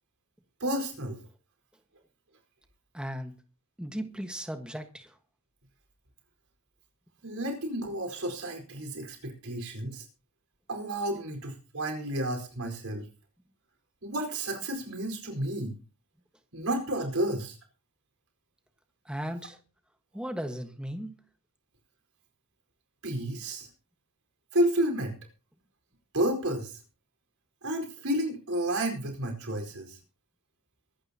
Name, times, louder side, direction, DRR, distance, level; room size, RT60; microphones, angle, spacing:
voice 1, 0.6-1.2 7.2-10.0 10.7-13.0 14.0-15.7 16.5-17.6 23.0-23.7 24.5-25.2 26.1-26.8 27.6-30.0, right 1 dB, 70° right, 4.7 m, -31 dB
voice 2, 2.9-3.3 3.8-5.2 19.0-19.6 20.1-21.1, equal, 5° right, 1.5 m, -36 dB
23.5 x 11.5 x 2.9 m
head